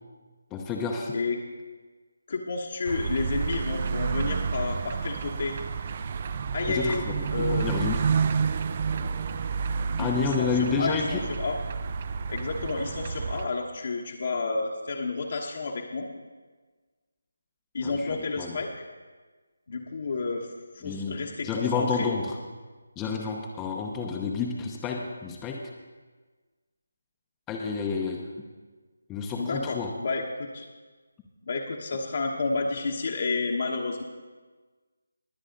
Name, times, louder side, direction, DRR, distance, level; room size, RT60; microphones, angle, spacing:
voice 1, 0.5-1.2 6.7-8.0 10.0-11.2 17.8-18.6 20.8-22.4 23.0-25.6 27.5-28.5 29.1-29.9, left 5 dB, 10° left, 0 dB, 0.8 m, -30 dB
voice 2, 2.3-5.6 6.5-7.0 7.3-7.7 10.0-11.6 12.3-16.1 17.7-18.8 19.7-20.5 20.7-22.1 29.3-30.6 31.5-34.0, left 3 dB, 50° left, -1 dB, 1.2 m, -30 dB
sound 1, 2.9-13.5, right 6 dB, 35° right, 0.4 m, -30 dB
20.5 x 8.2 x 3.9 m, 1.4 s
figure-of-eight pair, 160°, 0 cm